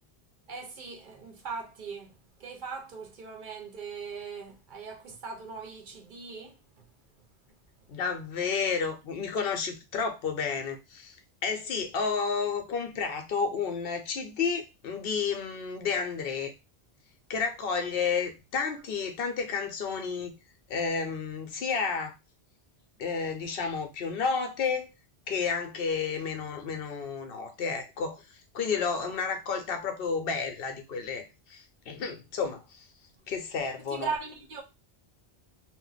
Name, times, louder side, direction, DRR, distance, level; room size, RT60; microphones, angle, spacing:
voice 1, 0.5-2.1 2.4-6.8 33.8-34.6, right 5 dB, 55° right, 0.7 m, -39 dB
voice 2, 7.9-11.2 11.4-16.5 17.3-20.3 20.7-22.1 23.0-24.9 25.3-28.2 28.5-31.2 31.5-32.6 33.3-34.1, left 5 dB, 65° left, 0.8 m, -31 dB
2.5 x 2.0 x 3.9 m
omnidirectional pair, 1.1 m